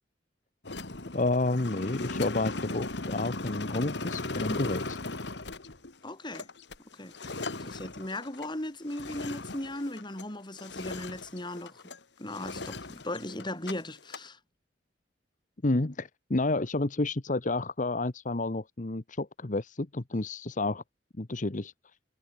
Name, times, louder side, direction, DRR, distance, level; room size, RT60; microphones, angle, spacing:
sound 1, 0.6-10.3 10.6-12.0 12.3-13.7 14.0-14.3, left 2 dB, 70° left, 2.0 m, -37 dB
voice 1, 1.1-5.0 7.6-7.7 15.6-20.8 21.2-21.7, left 2 dB, 45° left, 1.1 m, -30 dB
voice 2, 6.0-6.5 6.9-11.8 12.2-14.4, left 1 dB, 25° left, 3.6 m, -38 dB
head